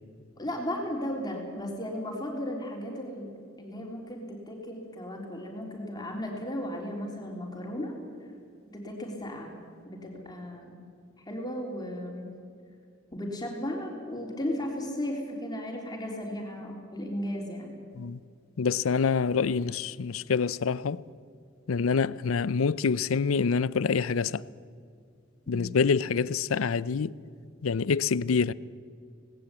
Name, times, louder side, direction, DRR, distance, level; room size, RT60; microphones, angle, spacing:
voice 1, 0.4-7.9 8.7-9.5 9.9-10.8 11.2-12.3 13.1-17.8 25.5-25.7, left 1 dB, 20° left, 3.6 m, -35 dB
voice 2, 18.6-21.0 21.7-24.4 25.5-27.1 27.6-28.5, left 5 dB, 85° left, 0.5 m, -26 dB
19.0 x 17.5 x 8.6 m
head